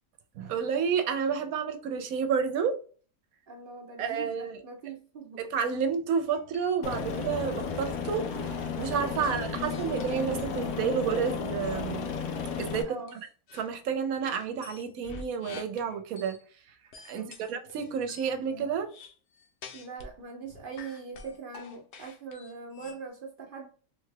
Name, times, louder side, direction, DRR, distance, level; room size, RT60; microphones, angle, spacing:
voice 1, 0.3-2.8 4.0-4.5 5.4-12.1 12.6-13.0 13.5-16.4 17.0-18.9, right 6 dB, 80° right, 1.0 m, -30 dB
voice 2, 3.5-5.4 12.8-13.2 17.1-17.4 19.7-23.7, right 4 dB, 55° right, 0.6 m, -42 dB
sound 1, 6.3-8.1 8.5-10.5 11.6-11.8 12.3-12.7 13.1-13.7 14.2-16.4 16.9-20.2 20.4-23.0, left 4 dB, 60° left, 0.9 m, -48 dB
Aircraft, 6.8-12.8, left 5 dB, 90° left, 1.1 m, -33 dB
3.4 x 2.3 x 3.2 m
omnidirectional pair, 1.5 m